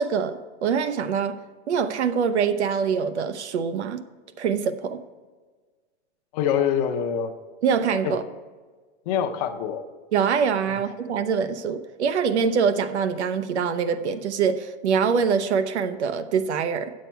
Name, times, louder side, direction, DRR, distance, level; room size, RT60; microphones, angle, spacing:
voice 1, 0.0-1.4 1.7-4.0 4.4-5.0 7.6-8.2 10.1-16.9, right 6 dB, 90° right, 10 dB, 0.8 m, -24 dB
voice 2, 6.3-7.3 8.0-8.1 9.1-9.8 10.7-10.8, left 8 dB, 35° left, 6 dB, 0.7 m, -25 dB
9.1 x 7.5 x 4.5 m, 1.4 s
hypercardioid pair, 150°, 33 cm